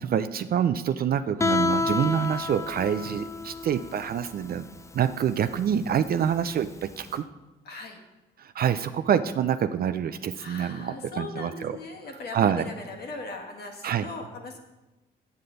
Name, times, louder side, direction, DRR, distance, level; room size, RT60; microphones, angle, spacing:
voice 1, 0.0-4.6 4.9-7.2 8.4-11.8 12.3-12.6 13.8-14.1, right 8 dB, 50° right, 11 dB, 0.4 m, -26 dB
Guitar, 1.4-7.1, left 3 dB, 15° left, 0.4 m, -30 dB
voice 2, 7.6-8.0 10.3-14.6, left 3 dB, 55° left, 2 dB, 1.5 m, -39 dB
8.2 x 7.6 x 3.9 m, 1.0 s
cardioid pair, 90°, 20 cm